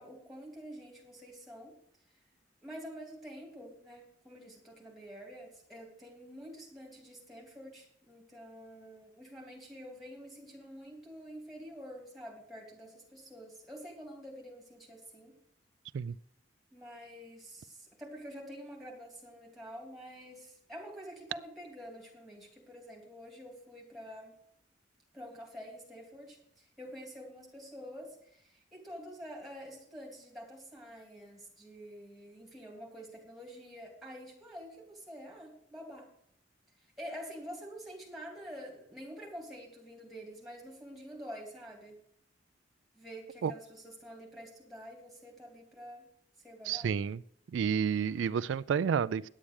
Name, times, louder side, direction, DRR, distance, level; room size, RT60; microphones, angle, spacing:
voice 1, 0.0-1.7 2.6-15.3 16.7-24.4 25.1-36.1 37.0-42.0 42.9-46.1 46.4-46.9, equal, ahead, -1 dB, 2.9 m, -47 dB
voice 2, 46.7-47.2 47.5-49.3, right 7 dB, 85° right, 16 dB, 0.3 m, -30 dB
10.0 x 8.6 x 6.3 m, 0.67 s
head